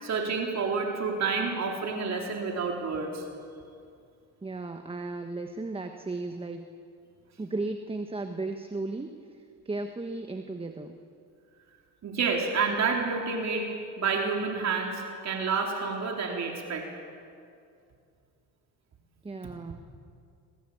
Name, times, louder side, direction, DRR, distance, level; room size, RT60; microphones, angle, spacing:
voice 1, 0.0-3.2 12.0-13.7 14.0-16.9, right 4 dB, 45° right, 1 dB, 3.8 m, -29 dB
voice 2, 4.4-6.7 7.4-11.0 19.2-19.9, right 3 dB, 15° right, 6 dB, 1.3 m, -35 dB
26.0 x 23.0 x 8.6 m, 2.4 s
cardioid pair, 110°, 37 cm